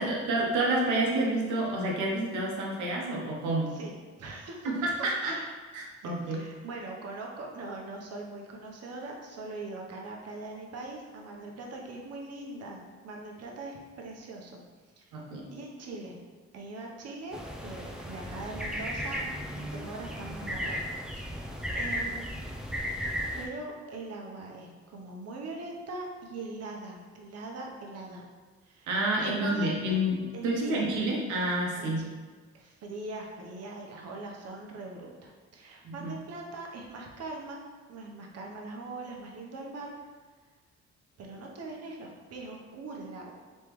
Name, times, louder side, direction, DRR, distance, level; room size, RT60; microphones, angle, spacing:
voice 1, 0.0-3.8 4.6-5.3 5.7-6.4 15.1-15.4 28.9-30.2 30.4-32.0 35.8-36.1, right 1 dB, 85° right, -2 dB, 0.9 m, -29 dB
voice 2, 4.2-4.7 5.2-5.5 6.0-14.6 15.0-15.2 15.5-16.2 16.5-20.9 21.2-21.5 21.7-22.3 23.4-28.3 28.6-28.9 29.2-30.0 30.3-30.9 31.7-32.1 32.5-37.6 37.9-39.9 41.2-43.3, right 2 dB, 55° right, 0 dB, 0.8 m, -41 dB
sound 1, 17.3-23.5, equal, ahead, 0.4 m, -35 dB
3.4 x 3.2 x 3.0 m, 1.4 s
cardioid pair, 90°, 30 cm